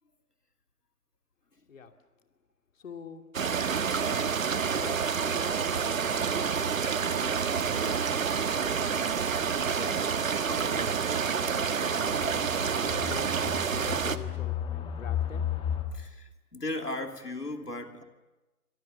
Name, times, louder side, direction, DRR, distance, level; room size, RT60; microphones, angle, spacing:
voice 1, 2.8-3.3 4.7-13.4 13.9-15.5, left 5 dB, 55° left, 5 dB, 2.5 m, -46 dB
sound 1, 3.3-14.2, right 6 dB, 60° right, 1.5 m, -28 dB
sound 2, 7.6-7.7 8.1-8.2 8.7-8.8 9.7-15.8, left 9 dB, 10° left, 1.8 m, -36 dB
voice 2, 15.9-18.0, left 2 dB, 90° left, 5 dB, 2.9 m, -36 dB
30.0 x 25.5 x 6.9 m, 1.1 s
figure-of-eight pair, 135°, 46 cm